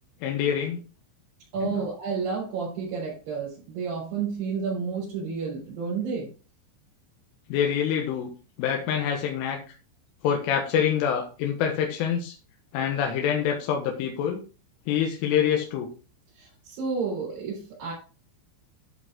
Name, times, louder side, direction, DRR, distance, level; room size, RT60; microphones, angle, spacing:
voice 1, 0.2-0.8 1.6-1.7 7.5-8.3 8.6-9.6 10.2-12.4 12.7-14.4 14.9-15.9, left 8 dB, 85° left, 2 dB, 3.9 m, -26 dB
voice 2, 1.5-6.3 16.3-17.9, right 5 dB, 50° right, -8 dB, 5.7 m, -31 dB
12.5 x 5.5 x 3.7 m, 0.34 s
omnidirectional pair, 5.5 m